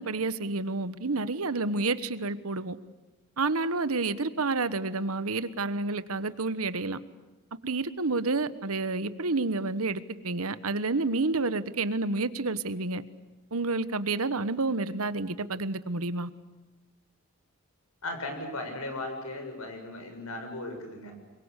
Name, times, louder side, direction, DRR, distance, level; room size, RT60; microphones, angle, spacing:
voice 1, 0.0-2.8 3.4-7.0 7.6-13.0 13.5-16.3, right 3 dB, 85° right, 14 dB, 1.3 m, -29 dB
voice 2, 18.0-21.1, left 2 dB, 80° left, 5 dB, 7.5 m, -37 dB
27.0 x 23.5 x 8.3 m, 1.2 s
head